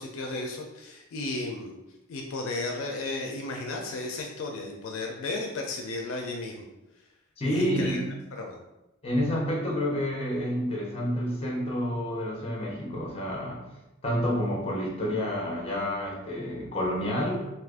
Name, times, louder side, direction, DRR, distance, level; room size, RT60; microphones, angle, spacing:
voice 1, 0.0-1.8 2.1-6.6 7.4-8.0 8.3-8.6, left 2 dB, 70° left, 1 dB, 0.4 m, -34 dB
voice 2, 7.4-8.1 9.0-13.6 14.0-17.5, equal, 30° left, -2 dB, 0.7 m, -29 dB
2.7 x 2.4 x 3.5 m, 0.96 s
head